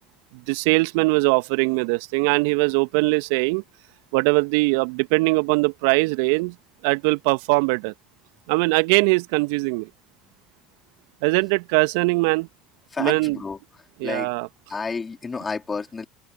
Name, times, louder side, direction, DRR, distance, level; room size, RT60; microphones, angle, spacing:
voice 1, 0.5-3.6 4.1-6.5 6.8-7.9 8.5-9.9 11.2-12.5 13.0-13.4 14.0-14.5, right 29 dB, 65° right, 1.7 m, -21 dB
voice 2, 12.9-13.6 14.0-14.3 14.7-16.1, left 4 dB, 25° left, 3.4 m, -30 dB
open air
figure-of-eight pair, 65°, 0 cm